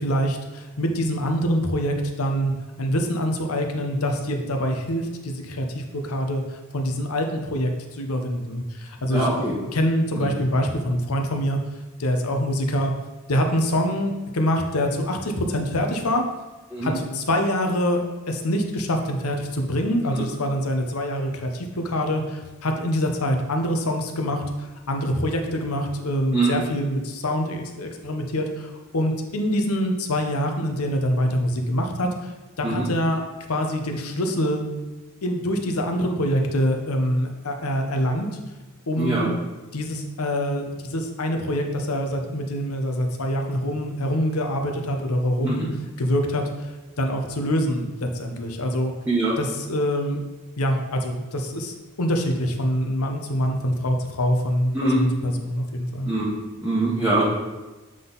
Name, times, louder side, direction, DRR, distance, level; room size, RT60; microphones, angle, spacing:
voice 1, 0.0-2.5 2.8-9.3 9.7-11.6 12.0-12.9 13.3-16.2 16.8-18.0 18.3-32.3 32.6-33.2 33.5-34.6 35.2-38.3 38.9-39.3 39.7-45.7 46.0-46.4 47.0-48.9 49.4-50.2 50.6-56.1, equal, 80° left, 4 dB, 0.8 m, -25 dB
voice 2, 9.1-9.5 10.1-10.3 16.7-16.9 20.1-20.2 26.3-26.5 32.6-32.9 39.0-39.3 45.4-45.6 49.1-49.3 54.7-55.0 56.0-56.3 56.6-57.3, right 2 dB, 10° right, -9 dB, 1.0 m, -23 dB
7.6 x 3.8 x 4.0 m, 1.1 s
head